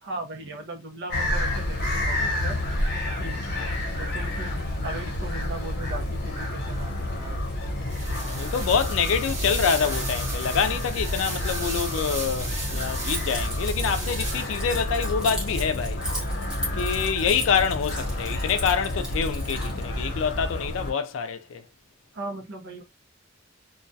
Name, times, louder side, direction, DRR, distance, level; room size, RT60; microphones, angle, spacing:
voice 1, 0.0-2.6 3.2-3.4 3.9-7.5 22.1-22.8, right 2 dB, 65° right, 0.7 m, -38 dB
sound 1, 1.1-20.9, left 1 dB, 60° left, 0.8 m, -29 dB
sound 2, 7.9-14.7, right 2 dB, 40° right, 1.2 m, -35 dB
voice 2, 8.2-16.0 16.7-21.6, left 6 dB, 90° left, 0.4 m, -26 dB
Keys jangling, 13.1-19.8, right 1 dB, 5° right, 0.7 m, -37 dB
2.3 x 2.2 x 2.6 m
head